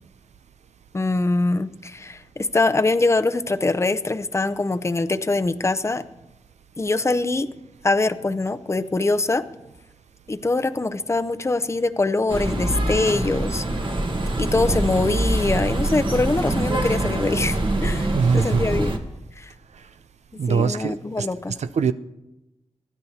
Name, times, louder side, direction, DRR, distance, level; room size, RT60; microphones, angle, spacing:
voice 1, 0.9-6.0 6.8-7.5 7.8-9.4 10.3-13.6 14.4-19.0 19.4-19.5 20.5-21.6, left 2 dB, 25° left, 11 dB, 0.6 m, -23 dB
sound 1, 12.3-19.0, right 1 dB, 45° right, 1.4 m, -24 dB
voice 2, 18.1-18.6 20.4-21.3 21.6-21.9, right 6 dB, 90° right, 12 dB, 0.5 m, -22 dB
24.0 x 11.0 x 2.8 m, 0.98 s
wide cardioid pair, 75°, 11 cm